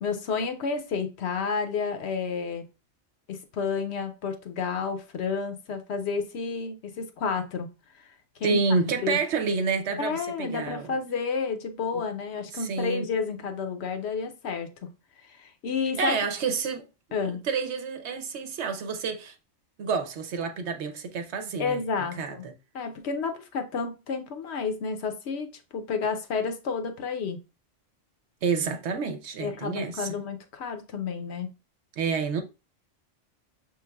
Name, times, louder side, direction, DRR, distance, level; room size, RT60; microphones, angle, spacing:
voice 1, 0.0-2.6 3.3-7.7 7.9-8.1 8.4-8.6 9.0-9.2 10.0-14.7 15.2-16.2 17.1-17.4 21.6-22.4 22.7-27.4 29.4-31.5, left 5 dB, 65° left, 0.9 m, -30 dB
voice 2, 8.4-10.9 11.9-12.0 12.5-13.1 15.9-16.8 17.2-19.3 19.8-21.8 22.2-22.5 28.4-30.2 32.0-32.4, right 5 dB, 65° right, 0.9 m, -29 dB
6.3 x 3.2 x 2.2 m
omnidirectional pair, 1.3 m